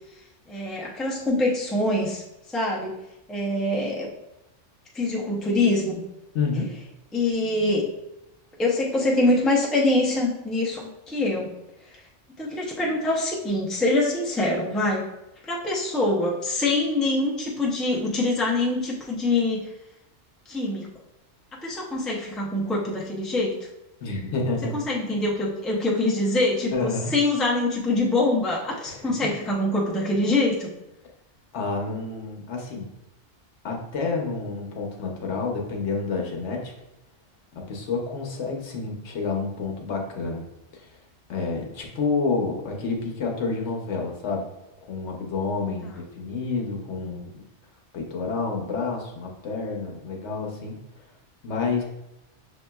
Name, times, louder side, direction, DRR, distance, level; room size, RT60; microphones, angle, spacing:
voice 1, 0.5-2.2 2.5-2.9 3.3-4.1 4.9-6.0 7.1-7.9 8.6-11.5 12.4-15.1 15.5-19.7 20.5-20.9 21.6-23.5 24.7-30.7, left 2 dB, ahead, -4 dB, 0.5 m, -24 dB
voice 2, 6.3-6.7 24.0-24.8 26.7-27.2 28.9-29.3 31.5-32.9 33.6-36.7 37.5-40.4 40.7-41.0 41.3-44.5 44.9-47.3 47.9-51.0 51.4-51.8, left 4 dB, 75° left, 1 dB, 1.0 m, -29 dB
6.2 x 2.9 x 2.2 m, 0.91 s
omnidirectional pair, 1.2 m